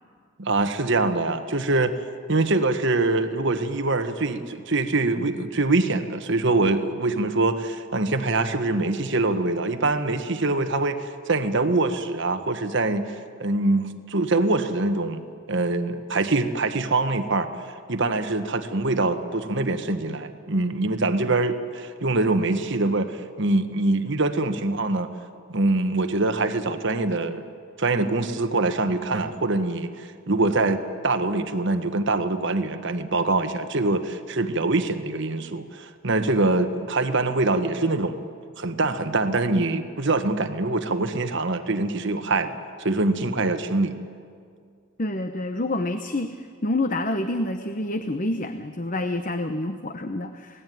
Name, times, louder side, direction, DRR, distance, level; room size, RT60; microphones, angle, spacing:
voice 1, 0.4-1.9 2.3-15.2 15.5-17.5 17.9-25.1 25.5-27.4 27.8-38.2 38.6-44.0, right 2 dB, 60° right, 8 dB, 1.4 m, -24 dB
voice 2, 45.0-50.6, left 2 dB, 40° left, 8 dB, 0.9 m, -28 dB
27.0 x 18.5 x 9.3 m, 2.2 s
head